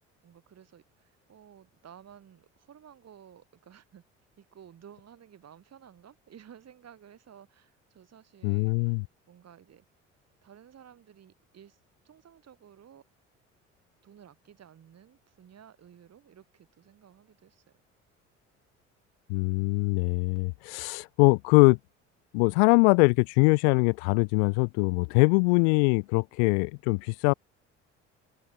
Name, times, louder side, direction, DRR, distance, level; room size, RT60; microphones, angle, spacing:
voice 1, 0.2-4.0 4.4-9.0 9.3-9.9 10.4-11.8 12.0-13.0 14.0-17.6, right 9 dB, 40° right, 5.6 m, -54 dB
voice 2, 8.4-9.0 19.3-21.8 22.3-27.3, left 34 dB, 60° left, 0.5 m, -23 dB
figure-of-eight pair, 55°, 37 cm